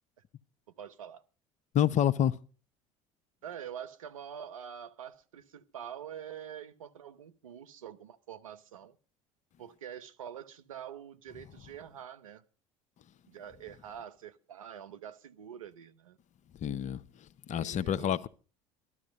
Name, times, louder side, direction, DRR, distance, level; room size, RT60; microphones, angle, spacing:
voice 1, 0.8-1.2 3.4-9.0 9.6-12.4 13.3-16.2 17.5-18.2, right 9 dB, 85° right, 0.9 m, -45 dB
voice 2, 1.7-2.4 16.6-17.0 17.5-18.3, left 10 dB, 45° left, 0.7 m, -27 dB
13.0 x 12.5 x 5.2 m
hypercardioid pair, 70°, 17 cm